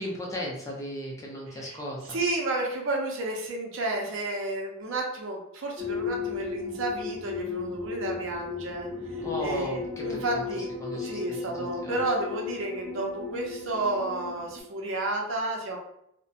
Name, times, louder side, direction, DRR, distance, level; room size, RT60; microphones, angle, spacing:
voice 1, 0.0-2.2 9.2-10.4 10.8-12.0, equal, 15° left, -3 dB, 0.5 m, -36 dB
voice 2, 1.5-1.8 2.1-8.9 9.4-15.8, right 2 dB, 65° right, 1 dB, 0.6 m, -31 dB
sound 1, 5.8-14.6, left 5 dB, 20° right, 1.4 m, -35 dB
2.7 x 2.1 x 2.4 m, 0.77 s
head